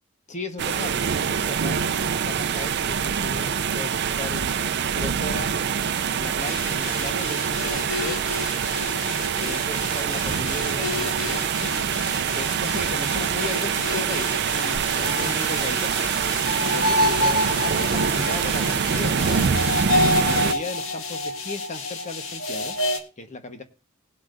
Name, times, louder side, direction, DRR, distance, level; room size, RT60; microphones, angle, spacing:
voice 1, 0.3-1.9 2.2-4.6 4.9-5.5 6.1-8.2 9.4-11.7 12.3-15.9 16.7-19.6 20.2-22.8 23.2-23.6, left 2 dB, 35° left, 6 dB, 1.3 m, -36 dB
sound 1, 0.6-20.5, right 7 dB, 55° right, 0.5 m, -25 dB
sound 2, 6.4-23.0, left 2 dB, 90° left, 1.6 m, -29 dB
19.5 x 8.2 x 2.6 m, 0.33 s
head